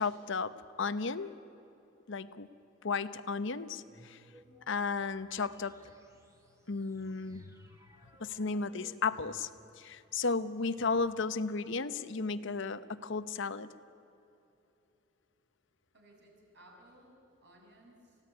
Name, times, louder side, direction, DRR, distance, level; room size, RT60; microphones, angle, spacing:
voice 1, 0.0-1.3 2.1-2.5 2.8-4.2 4.7-5.8 6.7-7.5 8.2-9.5 9.8-13.7, left 4 dB, 65° left, 13 dB, 0.9 m, -34 dB
sound 1, 3.6-9.9, right 1 dB, 15° right, 2.0 m, -61 dB
voice 2, 15.9-18.2, right 1 dB, 60° right, -1 dB, 6.3 m, -59 dB
29.0 x 16.5 x 9.6 m, 2.8 s
head